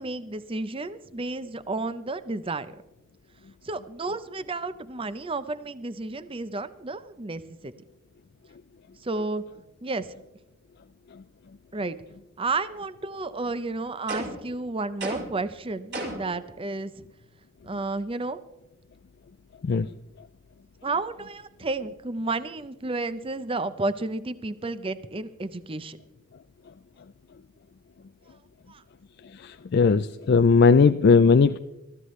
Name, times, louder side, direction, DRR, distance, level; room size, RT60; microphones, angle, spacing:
voice 1, 0.0-2.7 3.6-7.7 9.0-9.4 9.8-10.1 11.7-12.0 12.4-17.1 17.6-18.4 20.8-26.0 28.7-28.8, right 3 dB, 25° right, 13 dB, 0.6 m, -32 dB
sound 1, 14.1-14.5 15.0-15.4 15.9-16.4, right 1 dB, 60° right, 5.7 m, -33 dB
voice 2, 29.4-31.6, left 5 dB, 55° left, 9 dB, 0.4 m, -18 dB
21.0 x 14.0 x 3.2 m, 0.93 s
head